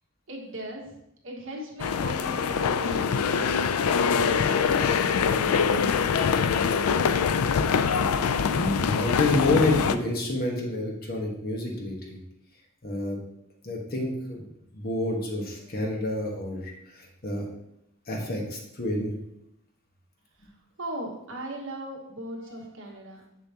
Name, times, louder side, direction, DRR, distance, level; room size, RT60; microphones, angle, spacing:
voice 1, 0.3-1.0 1.2-4.9 5.4-6.1 6.7-7.1 20.4-20.5 20.8-23.2, right 1 dB, 60° right, -1 dB, 1.6 m, -38 dB
sound 1, 1.8-10.0, left 6 dB, 90° left, 0.4 m, -24 dB
voice 2, 8.5-12.2 12.8-13.2 13.6-14.5 14.7-17.5 18.1-19.1, left 2 dB, 45° left, 0 dB, 1.2 m, -29 dB
6.9 x 6.8 x 2.9 m, 0.79 s
head